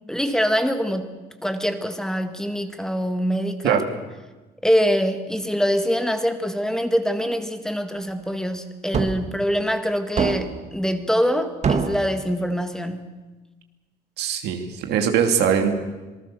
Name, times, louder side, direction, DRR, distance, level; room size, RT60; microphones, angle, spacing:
voice 1, 0.1-1.1 1.4-3.8 4.6-13.2, equal, 5° left, 8 dB, 1.8 m, -24 dB
sound 1, 8.9-9.2 10.2-10.7 11.6-12.1, right 6 dB, 40° right, 1.9 m, -24 dB
voice 2, 14.2-15.7, right 8 dB, 80° right, 5 dB, 2.9 m, -21 dB
26.5 x 19.0 x 7.0 m, 1.2 s
cardioid pair, 110°, 17 cm